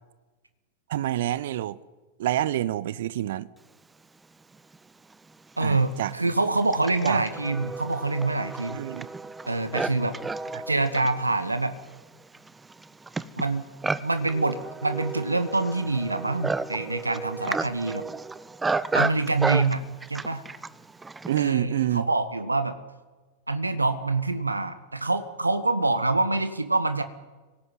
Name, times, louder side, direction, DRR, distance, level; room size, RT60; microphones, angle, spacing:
voice 1, 0.9-1.8 2.2-3.5 5.6-6.1 7.0-7.3 8.7-9.1 10.5-10.6 21.3-22.1, right 13 dB, 55° right, 0.7 m, -27 dB
Livestock farm animals working animals, 4.7-4.8 5.6-21.5, right 3 dB, 10° right, 0.8 m, -32 dB
voice 2, 5.6-8.8 9.4-10.2 10.7-11.8 13.4-13.7 14.0-18.0 18.9-20.4 21.4-22.8 23.5-27.0, right 2 dB, 80° right, 1.3 m, -26 dB
25.5 x 18.0 x 9.3 m
figure-of-eight pair, 90°, 0 cm